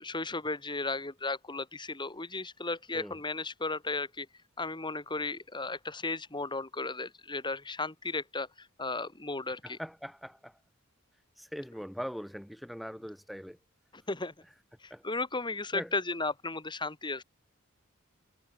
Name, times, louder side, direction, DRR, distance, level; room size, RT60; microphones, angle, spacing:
voice 1, 0.0-4.3 4.6-9.8 13.9-14.3 14.8-17.2, left 3 dB, 20° left, 2.9 m, -35 dB
voice 2, 9.6-10.6 11.4-13.6 14.9-15.0 15.7-15.9, equal, ahead, 5.5 m, -41 dB
head